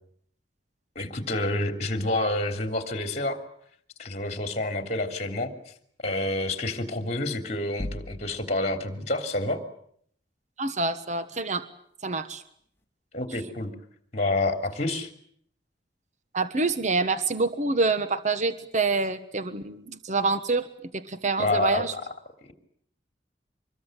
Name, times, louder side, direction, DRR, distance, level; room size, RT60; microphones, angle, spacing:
voice 1, 0.9-3.4 4.0-5.5 6.0-9.6 13.1-13.7 14.1-15.1 21.4-22.0 22.4-22.5, left 2 dB, 40° left, 7 dB, 3.2 m, -28 dB
sound 1, 7.8-8.8, left 1 dB, 15° left, 3.3 m, -37 dB
voice 2, 10.6-11.7 12.0-12.4 16.3-20.7 20.9-21.9, right 3 dB, 45° right, 11 dB, 1.3 m, -26 dB
25.5 x 22.0 x 9.1 m, 0.66 s
head